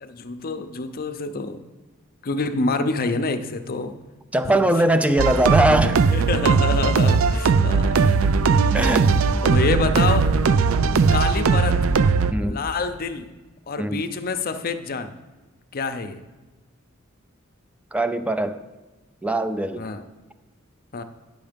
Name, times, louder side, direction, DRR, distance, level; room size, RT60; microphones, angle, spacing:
voice 1, 0.0-1.6 2.2-3.9 6.1-8.1 9.4-10.3 11.1-11.8 12.4-13.3 13.7-15.2 15.7-16.2 19.8-20.0 20.9-21.0, left 3 dB, 45° left, 9 dB, 0.6 m, -27 dB
voice 2, 4.3-6.0 8.7-9.1 10.9-11.0 12.3-12.6 13.8-14.0 17.9-18.6 19.2-19.8, right 1 dB, 5° right, 10 dB, 0.4 m, -21 dB
sound 1, 5.2-12.3, right 5 dB, 75° right, 0.5 m, -19 dB
9.6 x 6.3 x 5.1 m, 1.2 s
head